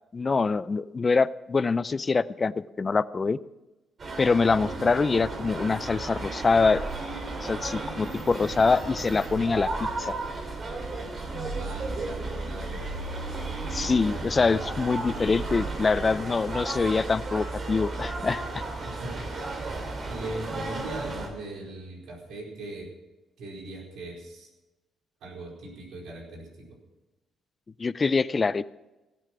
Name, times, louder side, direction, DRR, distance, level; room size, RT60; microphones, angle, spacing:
voice 1, 0.1-3.4 4.2-6.8 7.4-10.1 13.7-18.6 27.8-28.7, left 4 dB, 30° left, 18 dB, 0.4 m, -25 dB
sound 1, 4.0-21.3, right 2 dB, 45° right, 2.9 m, -34 dB
voice 2, 4.6-4.9 11.6-12.9 18.8-19.3 20.1-22.9 23.4-24.5 25.2-26.8, right 2 dB, 75° right, -1 dB, 4.4 m, -39 dB
17.0 x 9.1 x 5.9 m, 1.1 s
cardioid pair, 90°, 0 cm